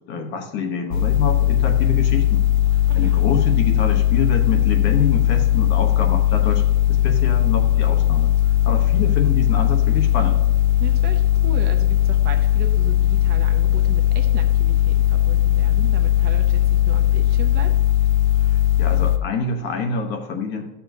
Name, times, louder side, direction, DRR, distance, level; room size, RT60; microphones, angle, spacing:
voice 1, 0.1-2.5 2.7-10.4 18.4-20.7, left 4 dB, 35° left, 4 dB, 1.0 m, -26 dB
sound 1, 0.9-19.2, left 13 dB, 55° left, 0.6 m, -18 dB
voice 2, 2.9-3.2 10.8-17.7, right 7 dB, 35° right, 6 dB, 0.5 m, -36 dB
13.0 x 7.0 x 2.7 m, 0.99 s
supercardioid pair, 175°, 31 cm